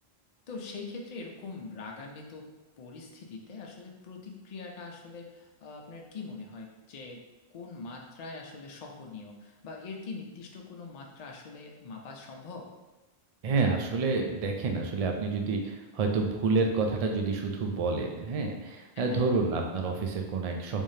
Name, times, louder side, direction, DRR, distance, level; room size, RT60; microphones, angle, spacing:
voice 1, 0.5-2.5 2.8-7.2 7.5-12.7 19.0-19.3, left 4 dB, 50° left, 0 dB, 0.6 m, -43 dB
voice 2, 13.4-20.8, right 4 dB, 50° right, 2 dB, 0.4 m, -28 dB
3.5 x 3.3 x 2.7 m, 1.1 s
omnidirectional pair, 1.1 m